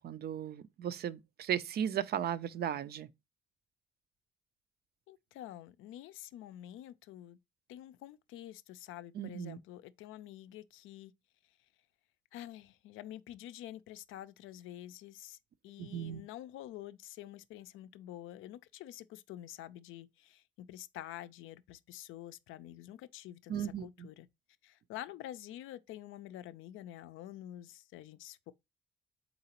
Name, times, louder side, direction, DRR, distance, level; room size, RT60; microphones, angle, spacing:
voice 1, 0.0-3.1 9.2-9.6 15.8-16.2 23.5-24.1, right 9 dB, 55° right, 0.4 m, -36 dB
voice 2, 5.1-7.4 7.7-11.1 12.3-15.4 15.6-24.3 24.6-28.5, left 13 dB, 85° left, 0.4 m, -48 dB
4.0 x 3.8 x 2.9 m
cardioid pair, 90°, 20 cm